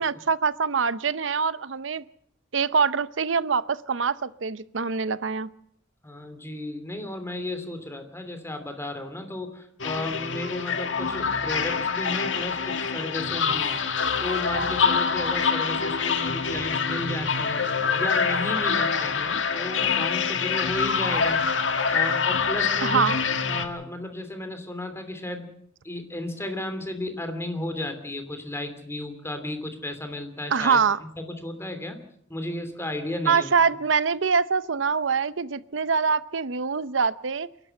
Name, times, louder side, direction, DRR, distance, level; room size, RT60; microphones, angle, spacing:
voice 1, 0.0-2.0 2.5-5.5 22.8-23.2 30.5-31.0 33.3-37.5, right 5 dB, 80° right, 16 dB, 0.7 m, -24 dB
voice 2, 6.0-13.8 14.2-17.6 17.9-21.5 21.9-23.1 23.5-25.5 25.8-30.8 31.2-32.0 32.3-33.6, left 1 dB, 15° left, 8 dB, 2.9 m, -34 dB
sound 1, 9.8-23.7, left 5 dB, 80° left, 1.8 m, -25 dB
28.5 x 12.0 x 7.8 m, 0.70 s
head